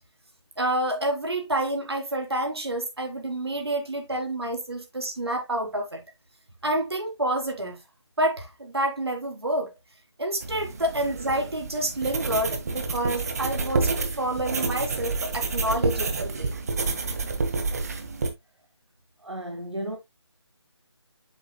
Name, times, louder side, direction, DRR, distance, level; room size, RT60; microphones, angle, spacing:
voice 1, 0.6-6.0 6.6-7.8 8.2-9.7 10.2-16.5, right 1 dB, 60° right, 3.7 m, -28 dB
sound 1, 10.4-18.3, right 3 dB, 35° right, 1.6 m, -29 dB
voice 2, 19.2-20.0, right 1 dB, 80° right, 1.9 m, -33 dB
8.8 x 8.1 x 2.2 m
figure-of-eight pair, 155°, 15 cm